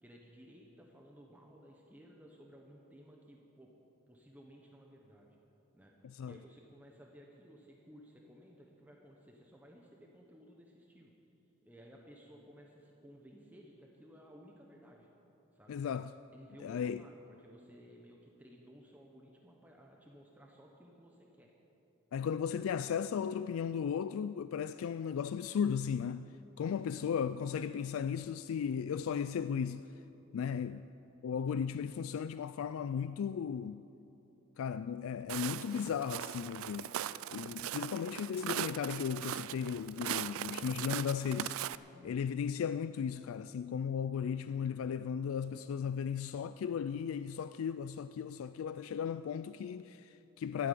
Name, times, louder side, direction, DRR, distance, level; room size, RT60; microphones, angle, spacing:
voice 1, 0.0-3.7 4.1-5.4 5.7-11.1 11.6-15.1 15.5-15.8 16.3-21.5 26.7-27.0 41.9-42.2, equal, 10° right, 1.0 m, -57 dB
voice 2, 6.0-6.3 15.7-16.1 16.6-17.0 22.1-26.3 26.6-29.9 30.3-30.8 31.2-33.8 34.6-36.9 37.3-41.6 42.0-50.7, left 7 dB, 80° left, 0.3 m, -36 dB
Walk footsteps, 35.3-41.8, right 11 dB, 80° right, 0.3 m, -39 dB
13.0 x 9.4 x 9.1 m
head